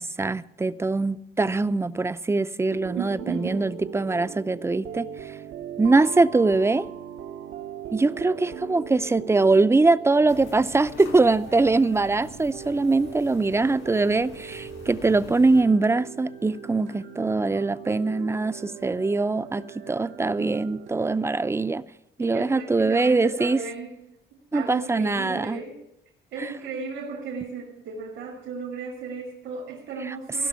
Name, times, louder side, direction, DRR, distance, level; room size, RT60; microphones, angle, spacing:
voice 1, 0.0-5.1 5.8-6.8 7.9-21.8 22.2-23.6 24.5-25.6, right 3 dB, 15° right, 0.5 m, -22 dB
sound 1, 2.7-20.9, right 8 dB, 75° right, 0.9 m, -40 dB
voice 2, 2.9-3.8 22.2-24.0 24.5-25.8 26.3-30.5, right 5 dB, 90° right, 2.8 m, -35 dB
sound 2, 10.3-15.6, left 3 dB, 80° left, 5.1 m, -45 dB
16.0 x 6.0 x 9.4 m
cardioid pair, 90°, 20 cm